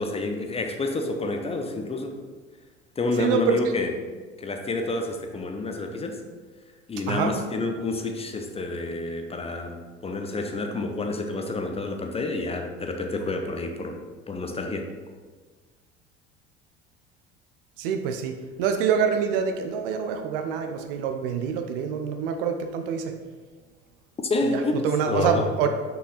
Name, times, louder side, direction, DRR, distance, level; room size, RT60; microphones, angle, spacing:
voice 1, 0.0-2.2 3.0-3.9 4.4-6.2 6.9-14.0 14.3-14.9 24.3-25.5, left 2 dB, 20° left, 4 dB, 0.8 m, -29 dB
voice 2, 3.2-3.6 7.1-7.3 17.8-23.1 24.5-25.7, right 7 dB, 55° right, 6 dB, 0.7 m, -26 dB
6.2 x 5.7 x 4.1 m, 1.4 s
figure-of-eight pair, 65°, 33 cm